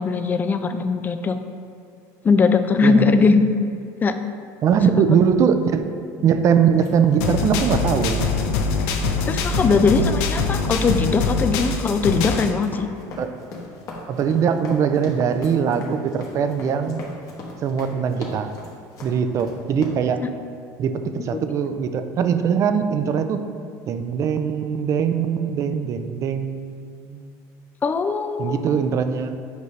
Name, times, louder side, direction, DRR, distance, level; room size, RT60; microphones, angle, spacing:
voice 1, 0.0-1.4 2.2-4.1 9.3-12.9 21.3-21.4 27.8-28.7, left 4 dB, 20° left, 9 dB, 0.4 m, -20 dB
voice 2, 2.8-3.3 4.6-5.9 6.2-8.2 13.2-13.4 14.1-17.1 17.6-18.5 19.0-20.2 20.8-23.4 23.9-27.3 28.4-29.4, right 7 dB, 40° right, 9 dB, 0.4 m, -21 dB
sound 1, 6.7-19.9, left 2 dB, 45° left, 1.3 m, -39 dB
sound 2, 7.2-12.5, left 4 dB, 75° left, 0.7 m, -23 dB
8.0 x 5.2 x 3.2 m, 2.4 s
supercardioid pair, 130°, 9 cm